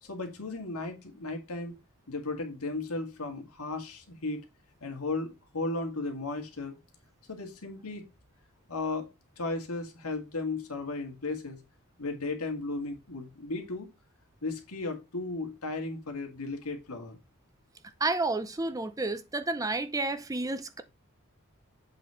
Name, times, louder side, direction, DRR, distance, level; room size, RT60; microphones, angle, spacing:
voice 1, 0.0-1.7 2.1-4.4 4.8-6.8 7.3-8.1 8.7-11.6 12.0-13.9 14.4-17.2, left 3 dB, 90° left, 2.0 m, -35 dB
voice 2, 18.0-20.8, right 2 dB, 15° right, 0.5 m, -30 dB
7.8 x 4.1 x 4.4 m
head